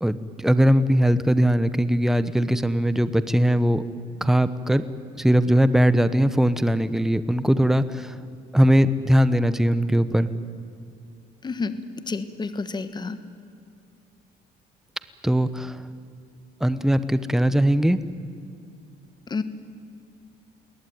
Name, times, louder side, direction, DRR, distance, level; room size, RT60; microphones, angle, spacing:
voice 1, 0.0-3.8 4.2-4.8 5.2-8.1 8.5-10.3 15.2-15.8 16.6-18.0, equal, ahead, 13 dB, 1.0 m, -20 dB
voice 2, 11.4-11.7 12.1-13.2 19.3-19.4, left 4 dB, 25° left, 12 dB, 1.4 m, -29 dB
22.0 x 17.5 x 9.5 m, 2.5 s
cardioid pair, 110°, 17 cm